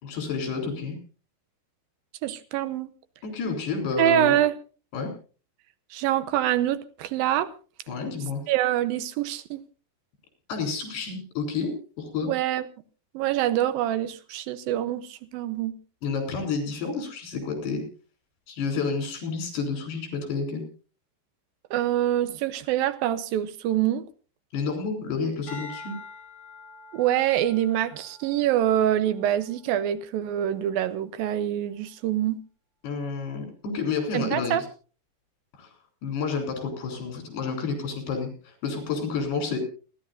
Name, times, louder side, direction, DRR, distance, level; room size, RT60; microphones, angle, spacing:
voice 1, 0.0-1.0 3.2-4.3 4.9-5.1 7.9-8.4 10.5-12.3 16.0-17.8 18.5-20.6 24.5-25.9 32.8-33.5 33.7-34.6 35.6-35.7 36.0-38.3 38.6-39.6, left 5 dB, 75° left, 5.9 m, -30 dB
voice 2, 2.2-2.9 4.0-4.5 5.9-7.5 8.5-9.6 12.2-12.6 13.1-15.7 21.7-24.1 26.9-32.4 34.1-34.6, right 12 dB, 75° right, 2.4 m, -25 dB
sound 1, 25.5-29.9 30.5-30.9, left 3 dB, 45° left, 7.8 m, -46 dB
29.0 x 11.5 x 2.6 m
omnidirectional pair, 4.7 m